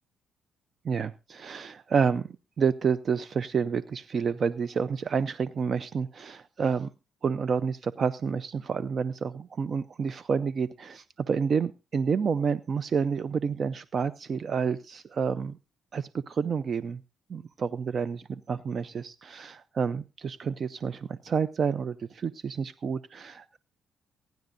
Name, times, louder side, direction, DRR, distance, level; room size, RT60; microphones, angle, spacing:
voice 1, 0.8-2.3 2.6-6.9 7.2-15.6 15.9-17.0 17.3-23.6, right 6 dB, 45° right, 15 dB, 0.5 m, -29 dB
23.5 x 10.5 x 2.6 m, 0.29 s
cardioid pair, 90°, 0 cm